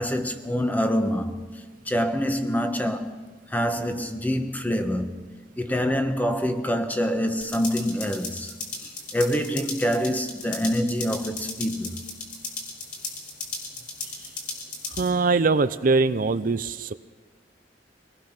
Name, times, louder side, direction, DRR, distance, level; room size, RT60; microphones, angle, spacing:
voice 1, 0.0-1.5 1.9-3.1 3.5-5.1 5.6-8.5 9.1-12.0, equal, 10° left, 1.2 m, -25 dB
sound 1, 7.4-15.1, left 3 dB, 50° left, 3.7 m, -36 dB
voice 2, 14.9-16.9, right 3 dB, 50° right, 0.5 m, -22 dB
24.0 x 18.5 x 5.9 m
head